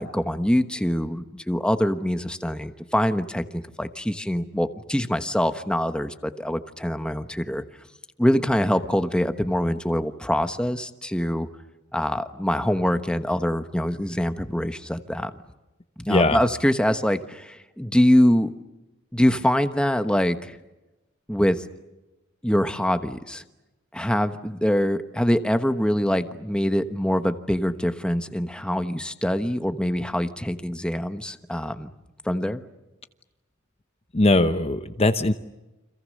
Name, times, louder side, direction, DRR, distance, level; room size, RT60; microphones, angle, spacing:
voice 1, 0.0-7.6 8.2-11.5 11.9-15.3 16.0-18.5 19.1-20.6 21.3-21.6 22.4-23.4 23.9-31.9 32.2-32.6, equal, 5° left, 9 dB, 1.2 m, -24 dB
voice 2, 16.1-16.4 34.1-35.3, left 2 dB, 30° left, 9 dB, 0.9 m, -20 dB
30.0 x 26.5 x 6.5 m, 1.0 s
head